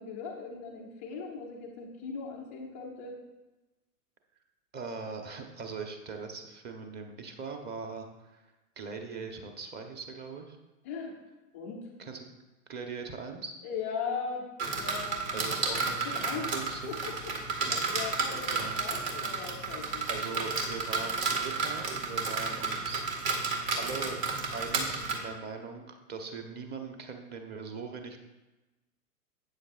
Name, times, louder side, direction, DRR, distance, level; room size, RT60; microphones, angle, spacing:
voice 1, 0.0-3.2 10.8-11.2 11.5-11.9 13.6-15.4 15.9-16.5 16.9-20.1, left 5 dB, 10° left, -1 dB, 0.3 m, -39 dB
voice 2, 4.7-8.4 8.8-10.6 12.0-12.3 12.7-13.5 15.3-17.0 17.5-18.2 18.5-18.8 20.1-23.0 23.7-24.2 24.5-28.2, right 4 dB, 20° right, 5 dB, 1.0 m, -41 dB
sound 1, 14.6-25.1, right 4 dB, 60° right, 2.0 m, -32 dB
12.5 x 8.7 x 2.5 m, 1.1 s
hypercardioid pair, 115°, 47 cm